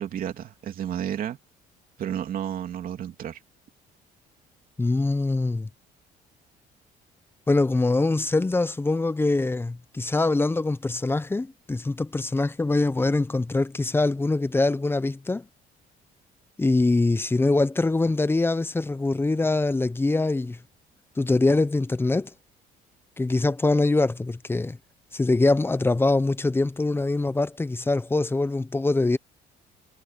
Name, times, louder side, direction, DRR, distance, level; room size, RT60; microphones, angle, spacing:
voice 1, 0.0-1.4 2.0-3.4, right 10 dB, 55° right, 3.2 m, -31 dB
voice 2, 4.8-5.7 7.5-15.4 16.6-20.6 21.2-22.3 23.2-24.8 25.1-29.2, left 2 dB, 15° left, 0.8 m, -23 dB
cardioid pair, 110°, 17 cm